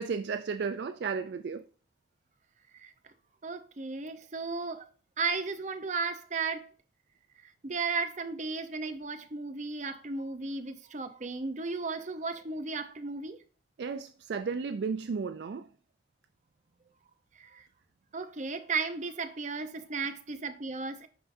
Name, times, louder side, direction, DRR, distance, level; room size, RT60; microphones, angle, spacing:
voice 1, 0.0-1.7 13.8-15.7, right 5 dB, 65° right, 0.4 m, -33 dB
voice 2, 3.4-4.9 5.2-6.7 7.4-13.4 17.4-17.6 18.1-21.1, right 4 dB, 40° right, 0.7 m, -35 dB
11.0 x 4.8 x 2.6 m
head